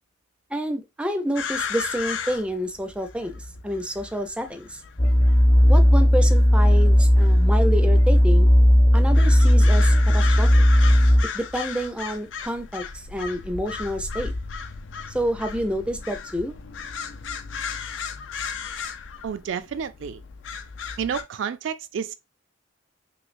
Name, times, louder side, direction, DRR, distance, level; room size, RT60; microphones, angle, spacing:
voice 1, 0.5-4.8 5.7-8.5 8.9-10.5 11.3-14.3 15.1-16.5, equal, 5° right, 0.4 m, -28 dB
sound 1, 1.4-21.2, left 5 dB, 80° left, 0.4 m, -36 dB
sound 2, 5.0-11.2, equal, 30° left, 0.7 m, -16 dB
voice 2, 19.2-20.2 21.0-22.1, right 7 dB, 80° right, 0.3 m, -30 dB
3.1 x 3.0 x 2.5 m
head